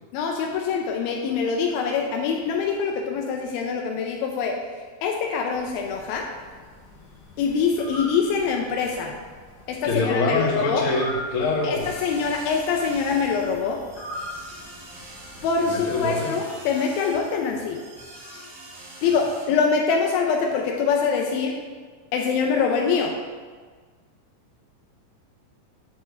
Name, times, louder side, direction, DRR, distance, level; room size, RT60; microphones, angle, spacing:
voice 1, 0.1-4.6 5.0-6.3 7.4-9.2 9.7-10.8 11.6-13.8 15.4-17.8 19.0-21.6 22.1-23.2, left 5 dB, 85° left, 1 dB, 2.4 m, -24 dB
sound 1, 5.5-16.2, left 1 dB, 45° left, 1.4 m, -42 dB
voice 2, 9.8-11.9 15.7-16.4, left 3 dB, 65° left, -4 dB, 2.8 m, -25 dB
sound 2, 11.8-19.4, right 1 dB, 45° right, 2.8 m, -43 dB
9.2 x 3.8 x 6.3 m, 1.5 s
omnidirectional pair, 4.3 m